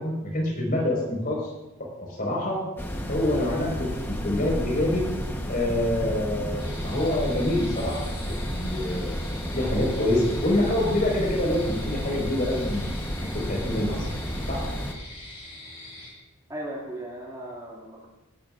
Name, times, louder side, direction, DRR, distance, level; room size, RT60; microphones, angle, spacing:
voice 1, 0.0-1.5 2.2-2.7 3.1-5.1 5.5-12.9 13.2-14.0 14.5-14.6, left 1 dB, 40° left, -1 dB, 4.7 m, -26 dB
sound 1, 2.8-14.9, equal, 10° left, 1.0 m, -31 dB
sound 2, 6.6-16.1, left 2 dB, 25° left, 3.4 m, -43 dB
voice 2, 16.5-18.1, right 1 dB, 15° right, -4 dB, 2.2 m, -37 dB
18.0 x 12.0 x 2.5 m, 0.96 s
head